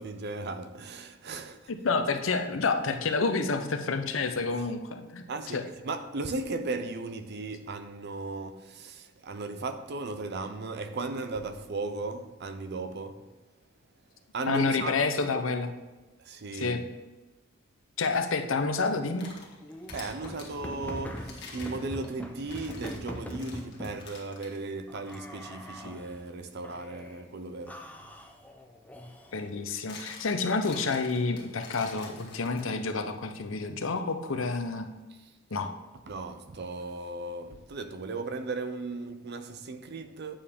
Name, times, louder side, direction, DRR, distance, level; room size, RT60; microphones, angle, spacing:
voice 1, 0.0-1.6 5.3-13.3 14.3-14.9 16.2-16.9 19.9-27.9 36.1-40.4, right 3 dB, 55° right, 0.6 m, -36 dB
voice 2, 1.7-5.2 5.5-5.6 14.5-15.7 16.5-16.8 18.0-19.3 29.3-34.9 35.5-35.7, left 4 dB, 80° left, 0.8 m, -29 dB
sound 1, 18.9-20.5 21.1-24.6 25.0-25.2 25.9-26.1 28.2-28.3 29.5-33.0, left 4 dB, 60° left, 1.7 m, -48 dB
sound 2, 19.6-24.1 24.9-26.2 26.6-27.2 27.7-29.5, equal, 10° left, 0.6 m, -42 dB
8.7 x 7.0 x 3.6 m
head